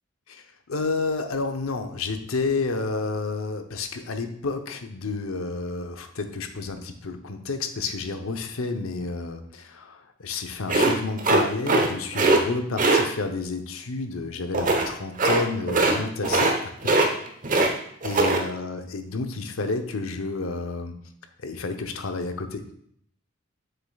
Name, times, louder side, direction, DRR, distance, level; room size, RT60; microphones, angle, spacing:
voice 1, 0.3-16.5 18.0-21.0 21.4-22.6, left 3 dB, 85° left, 7 dB, 0.7 m, -30 dB
sound 1, 10.7-11.9 12.1-12.4 12.8-13.0 14.5-14.9 15.2-15.4 15.7-16.0 16.2-16.6 16.8-17.7 18.0-18.4, right 2 dB, 40° right, 0.9 m, -20 dB
7.4 x 6.7 x 2.3 m, 0.67 s
head